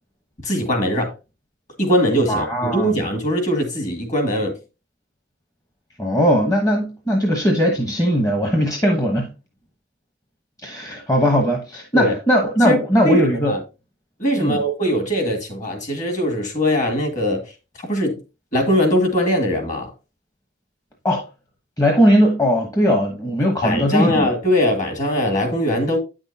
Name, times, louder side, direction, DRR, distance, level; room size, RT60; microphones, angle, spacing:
voice 1, 0.4-1.1 1.8-4.6 11.9-12.1 12.6-12.8 13.0-13.6 14.2-17.4 17.8-18.2 18.5-19.9 23.6-26.0, equal, 40° left, 2.0 m, -21 dB
voice 2, 2.3-3.0 6.0-9.3 10.6-13.5 14.4-14.6 21.0-21.2 21.8-24.3, equal, 15° left, 1.0 m, -19 dB
8.9 x 6.2 x 2.8 m
head